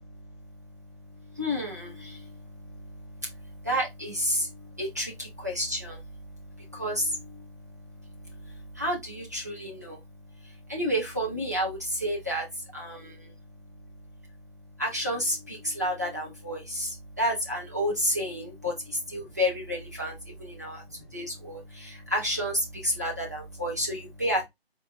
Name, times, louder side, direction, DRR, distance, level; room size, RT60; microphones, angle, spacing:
voice 1, 0.0-13.9 14.8-24.5, equal, 15° right, 0.6 m, -32 dB
4.0 x 2.3 x 3.4 m
figure-of-eight pair, 160°, 31 cm